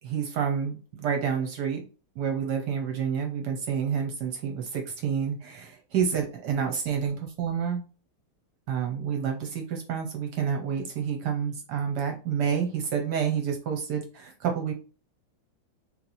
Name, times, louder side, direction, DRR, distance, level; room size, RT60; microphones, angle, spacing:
voice 1, 0.0-1.8 2.2-7.8 8.7-14.7, right 7 dB, 65° right, 3 dB, 1.1 m, -29 dB
3.2 x 3.0 x 4.0 m, 0.35 s
omnidirectional pair, 2.2 m